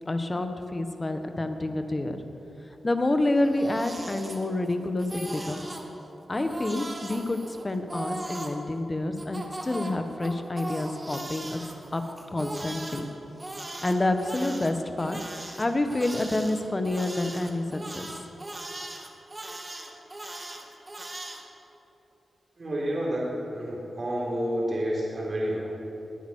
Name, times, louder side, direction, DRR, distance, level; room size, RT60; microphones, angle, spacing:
voice 1, 0.0-2.2 2.8-5.7 6.3-11.6 11.9-12.0 12.3-13.0 13.8-15.2 15.6-18.1, left 2 dB, 30° left, 7 dB, 1.5 m, -28 dB
Crying sobbing, 3.3-4.7 5.0-5.8 6.3-8.6 9.2-13.0 13.4-21.4, right 1 dB, 30° right, 2.2 m, -39 dB
voice 2, 22.6-25.6, equal, 50° right, -4 dB, 3.9 m, -29 dB
20.5 x 9.3 x 6.5 m, 3.0 s
cardioid pair, 55°, 0 cm